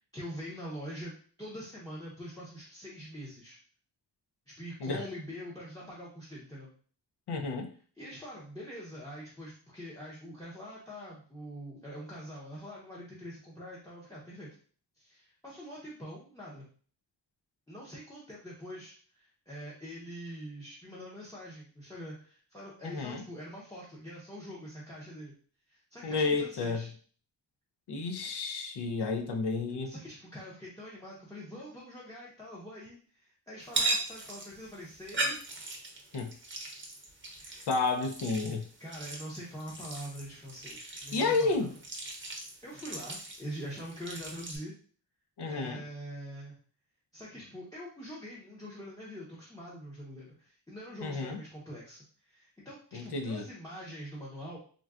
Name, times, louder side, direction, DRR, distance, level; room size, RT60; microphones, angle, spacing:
voice 1, 0.1-1.1 1.4-3.6 4.5-6.7 8.0-14.5 15.0-16.6 17.7-25.3 25.7-26.9 29.8-35.4 37.4-37.7 38.8-41.7 42.6-44.7 45.4-46.6 47.1-54.6, equal, 10° left, -6 dB, 0.7 m, -44 dB
voice 2, 7.3-7.7 22.8-23.2 26.0-26.9 27.9-29.9 36.1-36.3 37.7-38.7 41.1-41.7 45.4-45.8 51.0-51.4 52.9-53.4, left 3 dB, 70° left, 5 dB, 0.5 m, -31 dB
sound 1, 33.6-44.6, right 2 dB, 30° right, 0.7 m, -38 dB
3.7 x 2.2 x 2.3 m, 0.43 s
wide cardioid pair, 115°, 42 cm